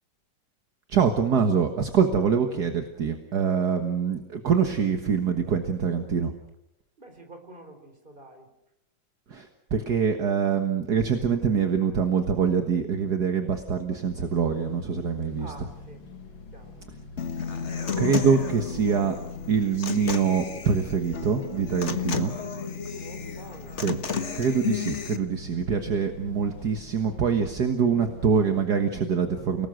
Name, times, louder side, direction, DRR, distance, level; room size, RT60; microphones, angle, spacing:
voice 1, 0.9-6.3 9.3-15.5 18.0-19.1 19.5-22.3 23.8-24.0 24.3-29.7, right 6 dB, 55° right, 6 dB, 2.0 m, -24 dB
voice 2, 7.0-8.5 15.4-16.0 16.5-16.8 22.1-22.4 22.9-23.8, right 2 dB, 25° right, 5 dB, 4.1 m, -47 dB
sound 1, 14.1-28.7, left 2 dB, 80° left, 3.0 m, -44 dB
Human voice / Acoustic guitar, 17.2-25.2, left 6 dB, 40° left, 1.5 m, -32 dB
29.5 x 19.5 x 6.4 m, 0.83 s
omnidirectional pair, 2.1 m